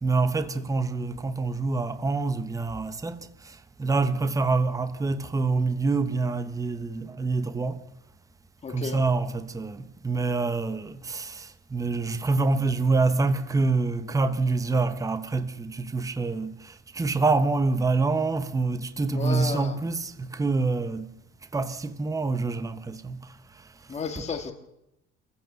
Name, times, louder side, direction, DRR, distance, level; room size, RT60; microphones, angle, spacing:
voice 1, 0.0-7.8 8.7-21.1 21.5-23.2, right 3 dB, 10° right, 1.0 m, -26 dB
voice 2, 8.6-9.0 19.2-19.8 23.9-24.5, left 5 dB, 20° left, 2.0 m, -32 dB
27.0 x 15.5 x 6.9 m
cardioid pair, 145°, 31 cm